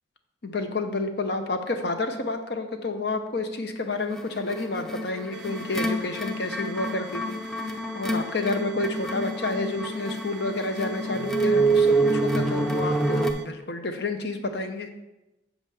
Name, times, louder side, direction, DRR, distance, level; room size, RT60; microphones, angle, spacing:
voice 1, 0.4-7.4 7.7-14.9, left 2 dB, 55° left, 7 dB, 0.7 m, -30 dB
sound 1, 4.1-13.3, right 2 dB, ahead, 0.4 m, -27 dB
sound 2, 5.3-13.4, right 6 dB, 65° right, 0.5 m, -47 dB
7.3 x 7.2 x 3.4 m, 0.96 s
head